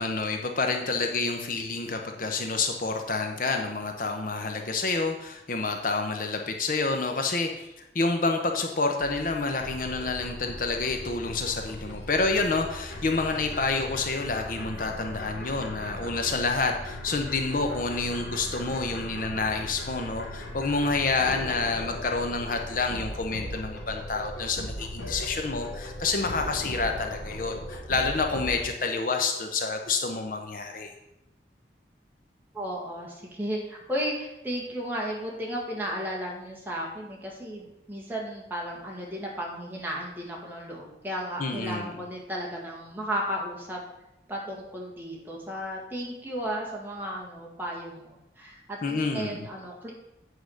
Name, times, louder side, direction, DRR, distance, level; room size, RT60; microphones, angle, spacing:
voice 1, 0.0-7.7 7.9-30.9 41.4-41.9 48.8-49.5, left 3 dB, 50° left, 4 dB, 0.7 m, -28 dB
sound 1, 9.0-28.6, left 1 dB, 75° left, 2.6 m, -38 dB
voice 2, 32.5-43.8 44.3-49.9, equal, 10° right, -3 dB, 1.9 m, -34 dB
8.4 x 4.8 x 6.4 m, 0.90 s
head